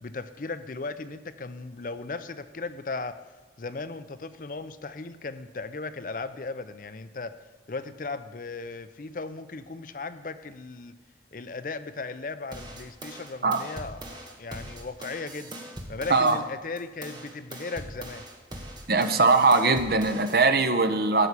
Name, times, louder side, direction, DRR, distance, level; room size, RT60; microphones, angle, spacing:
voice 1, 0.0-3.2 3.6-7.3 7.7-11.0 11.3-15.5 15.9-18.2, left 3 dB, 45° left, 12 dB, 0.5 m, -37 dB
sound 1, 12.5-16.4 16.8-20.4, right 1 dB, 25° right, 1.6 m, -41 dB
voice 2, 18.9-21.3, right 3 dB, 55° right, 8 dB, 0.9 m, -21 dB
14.0 x 5.7 x 8.2 m, 1.3 s
head